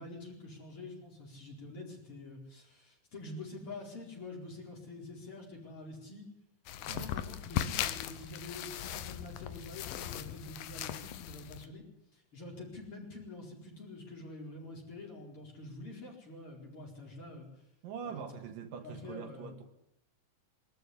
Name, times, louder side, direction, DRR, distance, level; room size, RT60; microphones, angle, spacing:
voice 1, 0.0-6.3 6.8-11.8 12.1-17.5 18.0-18.2 18.8-19.6, left 2 dB, 40° left, 5.3 m, -46 dB
sound 1, 6.7-11.7, left 11 dB, 80° left, 2.7 m, -38 dB
voice 2, 17.8-19.7, right 7 dB, 75° right, 3.1 m, -43 dB
22.0 x 13.5 x 9.9 m
omnidirectional pair, 4.0 m